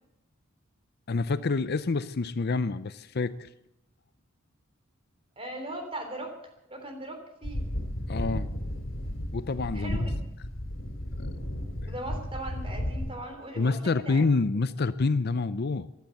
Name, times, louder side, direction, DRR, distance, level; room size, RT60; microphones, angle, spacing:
voice 1, 1.1-3.5 8.1-8.5 9.3-10.0 11.2-11.3 11.8-11.9 13.6-15.9, left 3 dB, 50° left, 14 dB, 0.6 m, -27 dB
voice 2, 5.4-7.6 9.7-10.2 11.9-14.2, right 1 dB, 25° right, 4 dB, 3.5 m, -39 dB
sound 1, 7.4-13.1, equal, 70° left, 3.1 m, -33 dB
15.5 x 12.0 x 7.9 m, 0.84 s
head